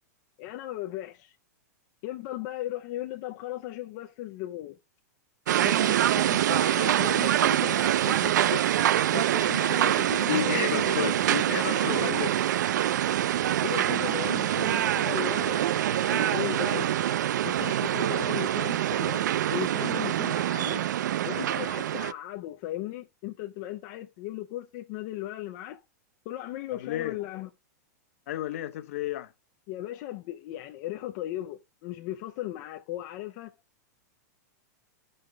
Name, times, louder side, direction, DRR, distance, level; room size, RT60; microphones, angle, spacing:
voice 1, 0.4-1.3 2.0-4.8 5.6-8.6 9.1-11.2 11.7-12.2 13.6-16.9 17.4-20.8 21.3-25.8 26.3-27.5 29.7-33.6, left 14 dB, 30° left, 0.5 m, -37 dB
sound 1, 5.5-22.1, right 11 dB, 85° right, 0.4 m, -25 dB
voice 2, 10.3-12.4 26.7-27.2 28.3-29.3, left 13 dB, 50° left, 1.1 m, -32 dB
14.5 x 5.4 x 3.2 m
supercardioid pair, 175°, 10 cm